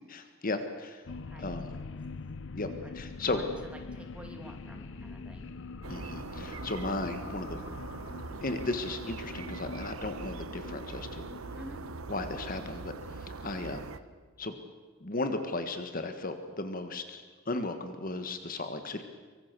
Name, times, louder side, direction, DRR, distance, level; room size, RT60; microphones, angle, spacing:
voice 1, 0.4-1.0 1.4-1.7 2.5-2.7 2.9-3.4 5.9-7.6 8.4-11.3 12.1-12.9 13.2-13.8 14.4-14.5 15.0-19.0, left 2 dB, 40° left, 8 dB, 1.5 m, -35 dB
sound 1, 1.0-13.9, left 4 dB, 60° left, 0.7 m, -45 dB
voice 2, 1.3-1.6 2.8-2.9 3.3-3.5 3.7-5.5 11.5-11.8, equal, 5° right, 3 dB, 2.7 m, -48 dB
sound 2, 5.8-14.0, right 3 dB, 80° right, 1.0 m, -42 dB
24.5 x 23.5 x 6.8 m, 1.5 s
head